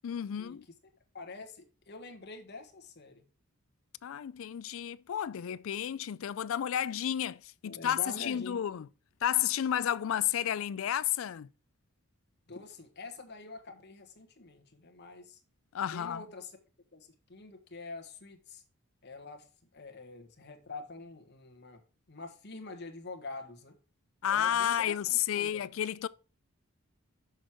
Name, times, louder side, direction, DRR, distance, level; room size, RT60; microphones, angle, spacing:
voice 1, 0.0-0.7 4.0-8.9 9.2-11.5 15.7-16.2 24.2-26.1, left 10 dB, 65° left, 0.3 m, -31 dB
voice 2, 1.1-3.2 7.6-8.6 12.5-15.4 15.9-16.5 16.9-18.6 19.0-19.4 19.7-21.8 22.1-23.7 24.2-25.7, left 3 dB, 50° left, 1.4 m, -46 dB
6.5 x 6.1 x 4.5 m
head